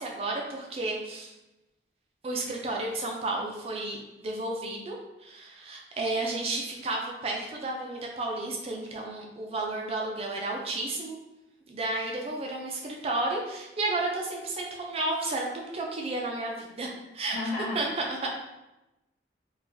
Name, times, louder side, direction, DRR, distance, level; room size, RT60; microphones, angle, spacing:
voice 1, 0.0-1.3 2.2-5.0 5.2-11.2 11.7-17.4 17.7-18.3, right 2 dB, 35° right, 0 dB, 0.4 m, -32 dB
voice 2, 17.3-17.8, left 2 dB, 45° left, -6 dB, 1.0 m, -31 dB
3.8 x 2.2 x 2.6 m, 0.97 s
head